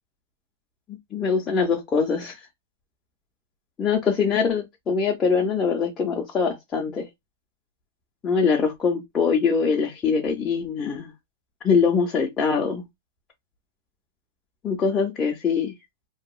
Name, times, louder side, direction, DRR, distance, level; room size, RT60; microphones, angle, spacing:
voice 1, 1.1-2.4 3.8-7.1 8.2-11.1 11.6-12.8 14.6-15.7, left 5 dB, 15° left, 0.5 m, -23 dB
2.7 x 2.3 x 2.3 m
supercardioid pair, 170°, 0 cm